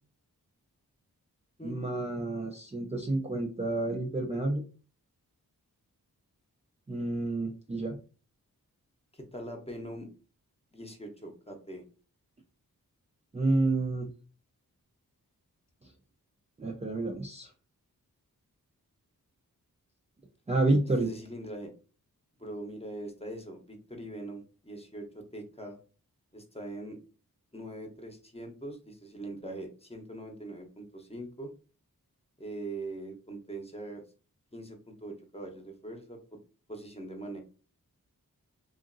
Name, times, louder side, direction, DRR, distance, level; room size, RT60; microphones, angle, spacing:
voice 1, 1.6-4.6 6.9-8.0 13.3-14.1 16.6-17.5 20.5-21.1, right 2 dB, 20° right, 0 dB, 0.4 m, -29 dB
voice 2, 9.1-10.1 10.7-11.8 21.0-21.7 22.4-25.8 26.3-27.0 27.5-31.5 32.4-34.0 34.5-36.2 36.7-37.4, right 1 dB, 15° left, 3 dB, 0.8 m, -42 dB
2.8 x 2.5 x 2.6 m, 0.36 s
cardioid pair, 45°, 36 cm